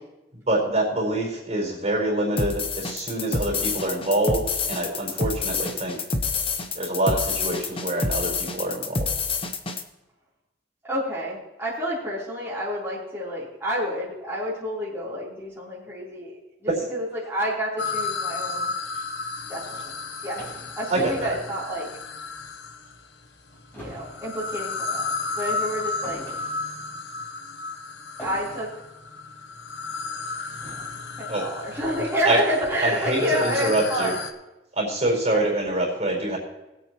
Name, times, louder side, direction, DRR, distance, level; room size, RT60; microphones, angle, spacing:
voice 1, 0.5-6.0 6.7-9.1 20.9-21.3 31.3-31.4 32.2-32.4 32.8-34.1 34.8-36.4, right 1 dB, 40° right, -1 dB, 4.4 m, -25 dB
sound 1, 2.4-9.8, left 4 dB, 30° left, 0.9 m, -27 dB
voice 2, 10.9-18.7 19.5-19.8 20.2-20.4 20.8-21.9 23.8-25.1 25.4-26.2 28.2-28.7 31.2-34.1, equal, 15° right, -10 dB, 3.5 m, -29 dB
sound 2, 17.8-23.0 23.8-34.3, left 4 dB, 80° left, 1.0 m, -33 dB
sound 3, 19.8-22.5 22.9-23.1 23.4-26.9 28.2-28.9 29.8-29.9 30.6-31.1, right 1 dB, 15° left, 4.2 m, -43 dB
21.0 x 8.5 x 3.0 m, 0.99 s
head